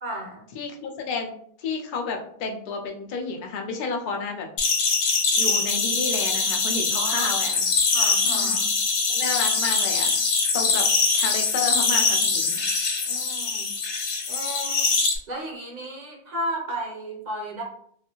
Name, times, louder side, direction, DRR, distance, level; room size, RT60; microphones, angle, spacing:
voice 1, 0.0-0.4 7.0-7.3 7.5-8.7 13.1-13.7 14.3-14.9 15.3-17.6, right 1 dB, 45° right, -1 dB, 0.7 m, -34 dB
voice 2, 0.5-1.3 1.6-4.5 5.1-7.5 8.2-8.7 9.1-10.1 10.5-10.9 11.1-12.6, left 4 dB, 55° left, 2 dB, 0.6 m, -31 dB
sound 1, 4.6-15.1, left 4 dB, 75° left, 0.9 m, -23 dB
2.6 x 2.4 x 2.8 m, 0.63 s
omnidirectional pair, 1.2 m